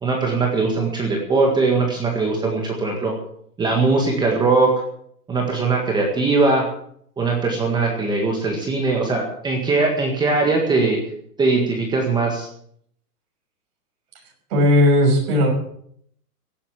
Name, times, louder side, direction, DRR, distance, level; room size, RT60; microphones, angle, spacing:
voice 1, 0.0-3.1 3.6-4.7 5.3-6.6 7.2-11.0 11.4-12.5, right 3 dB, 10° right, 1 dB, 1.8 m, -20 dB
voice 2, 14.5-15.5, left 1 dB, 40° right, 0 dB, 6.3 m, -16 dB
17.0 x 8.5 x 7.2 m, 0.67 s
hypercardioid pair, 160°, 47 cm